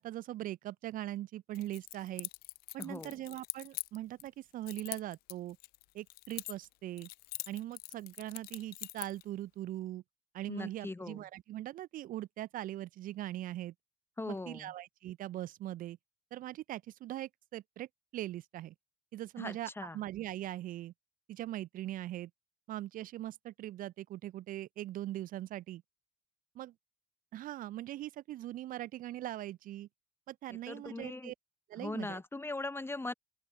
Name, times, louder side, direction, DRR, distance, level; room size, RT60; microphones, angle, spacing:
voice 1, 0.0-2.3 2.7-5.6 5.9-7.1 7.5-10.0 10.3-13.7 14.3-16.0 16.3-17.9 18.1-18.7 19.1-20.9 21.3-22.3 22.7-25.8 26.5-26.7 27.3-29.9 30.3-31.3 31.7-32.2, right 14 dB, 50° right, 1.0 m, -41 dB
Keys jangling, 1.5-4.3 4.7-6.7 7.0-9.2, left 21 dB, 55° left, 0.9 m, -43 dB
voice 2, 2.8-3.1 10.5-11.2 14.2-14.7 19.4-20.0 30.7-31.3 31.8-33.1, left 2 dB, 15° left, 1.3 m, -40 dB
open air
figure-of-eight pair, 50°, 18 cm